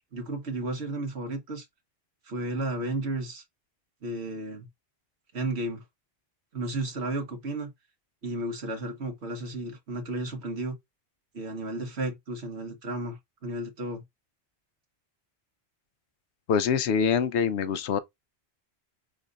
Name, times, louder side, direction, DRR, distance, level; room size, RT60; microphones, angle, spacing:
voice 1, 0.1-1.6 2.2-3.4 4.0-4.7 5.3-5.8 6.5-7.7 8.2-10.8 11.3-14.0, right 2 dB, 75° right, 1.6 m, -33 dB
voice 2, 16.5-18.0, left 7 dB, 80° left, 0.9 m, -24 dB
5.2 x 3.7 x 2.4 m
omnidirectional pair, 1.1 m